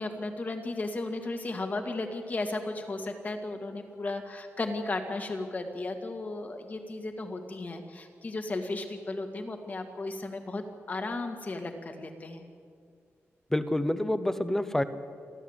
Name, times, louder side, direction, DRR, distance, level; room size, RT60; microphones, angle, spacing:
voice 1, 0.0-12.4, left 2 dB, 35° left, 5 dB, 1.9 m, -35 dB
voice 2, 13.5-14.8, left 1 dB, 10° left, 11 dB, 0.9 m, -27 dB
29.0 x 11.5 x 8.1 m, 2.2 s
wide cardioid pair, 170°, 5 cm